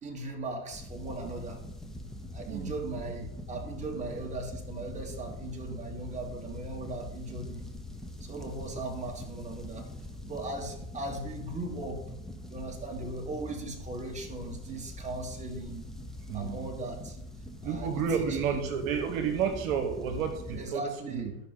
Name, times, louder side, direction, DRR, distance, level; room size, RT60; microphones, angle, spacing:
voice 1, 0.0-1.6 2.3-7.7 8.2-9.9 10.2-12.0 12.5-15.9 16.3-17.2 17.6-18.0 18.3-18.7 20.5-21.3, right 2 dB, 15° right, 1 dB, 1.8 m, -38 dB
sound 1, 0.7-20.7, left 1 dB, ahead, 0.4 m, -43 dB
voice 2, 16.3-16.7 17.6-21.4, right 7 dB, 60° right, 7 dB, 1.4 m, -31 dB
13.5 x 5.8 x 4.0 m, 0.82 s
hypercardioid pair, 105°, 46 cm